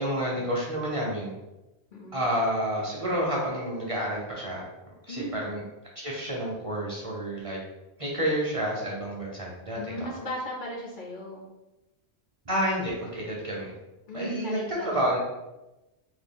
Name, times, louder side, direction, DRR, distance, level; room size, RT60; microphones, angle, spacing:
voice 1, 0.0-1.3 2.1-4.7 5.1-5.6 6.0-7.6 8.0-9.9 12.5-13.7 14.1-15.2, equal, 40° right, -4 dB, 0.6 m, -29 dB
voice 2, 1.9-2.3 5.1-5.4 9.7-11.5 14.1-14.9, equal, 60° left, -2 dB, 0.6 m, -36 dB
2.9 x 2.2 x 3.5 m, 1.0 s
omnidirectional pair, 1.1 m